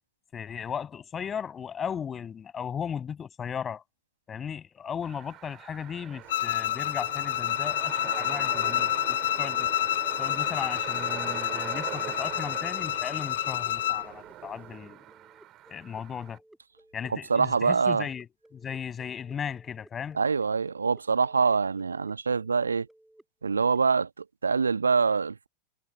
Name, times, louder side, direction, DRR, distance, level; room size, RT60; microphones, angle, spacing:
voice 1, 0.3-3.8 4.3-9.7 10.2-15.0 15.7-16.4 16.9-18.3 18.5-20.2, left 7 dB, 20° left, 7.7 m, -36 dB
sound 1, 5.0-16.4, right 14 dB, 35° right, 5.4 m, -41 dB
Bowed string instrument, 6.3-14.1, left 13 dB, 55° left, 0.4 m, -29 dB
sound 2, 14.0-23.8, right 1 dB, 5° right, 4.5 m, -58 dB
voice 2, 17.1-18.1 20.1-22.9 23.4-24.1 24.4-25.5, right 5 dB, 75° right, 1.2 m, -25 dB
figure-of-eight pair, 90°, 0 cm